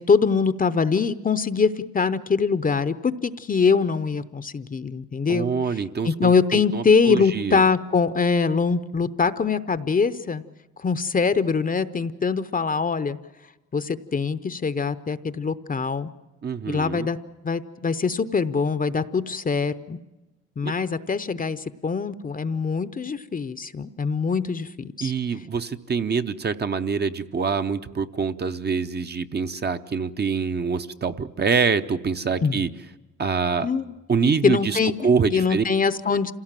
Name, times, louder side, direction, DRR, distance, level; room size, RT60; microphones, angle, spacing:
voice 1, 0.0-5.5 6.0-10.4 10.8-13.2 13.7-16.1 16.7-17.2 17.4-20.0 20.6-25.1 32.4-32.6 33.6-33.9 34.2-36.3, left 5 dB, 30° left, 13 dB, 0.7 m, -23 dB
voice 2, 5.3-7.6 16.4-17.1 20.6-20.7 25.0-32.7 33.2-33.7 34.1-35.6, right 5 dB, 35° right, 8 dB, 0.8 m, -25 dB
26.5 x 17.0 x 7.5 m, 1.1 s
cardioid pair, 90°, 30 cm